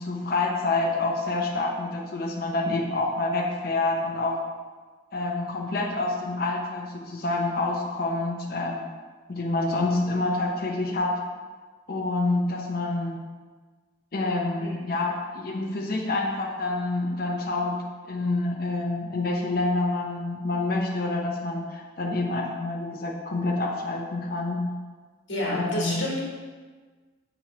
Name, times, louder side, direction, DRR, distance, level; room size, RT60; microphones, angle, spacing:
voice 1, 0.0-4.4 5.1-8.9 9.3-11.2 11.9-13.2 14.1-24.7 25.4-26.1, left 2 dB, 50° left, 0 dB, 0.6 m, -27 dB
voice 2, 25.3-26.2, left 1 dB, 75° left, -5 dB, 1.3 m, -29 dB
5.6 x 3.1 x 2.9 m, 1.4 s
head